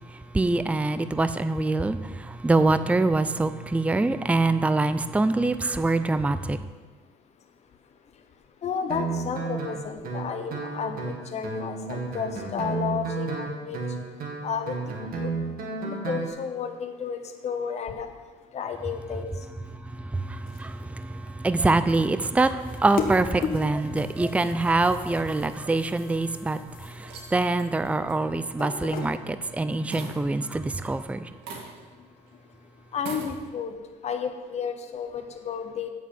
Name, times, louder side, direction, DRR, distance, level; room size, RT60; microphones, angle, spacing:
voice 1, 0.3-6.6 20.1-31.3, right 2 dB, 10° right, 12 dB, 0.5 m, -25 dB
voice 2, 8.6-13.8 14.4-14.7 15.0-15.2 15.8-18.1 18.5-19.3 32.9-33.8 34.0-35.9, left 6 dB, 40° left, 6 dB, 0.9 m, -32 dB
Guitar, 8.9-16.3, right 4 dB, 60° right, 2.3 m, -32 dB
sound 1, 20.1-29.7, left 5 dB, 55° left, 1.5 m, -38 dB
sound 2, 25.6-26.3 26.8-29.6 29.9-31.0 31.4-32.0 32.3-32.4 32.9-33.4, right 4 dB, 80° right, 2.4 m, -42 dB
8.0 x 7.3 x 8.6 m, 1.3 s
cardioid pair, 110°, 17 cm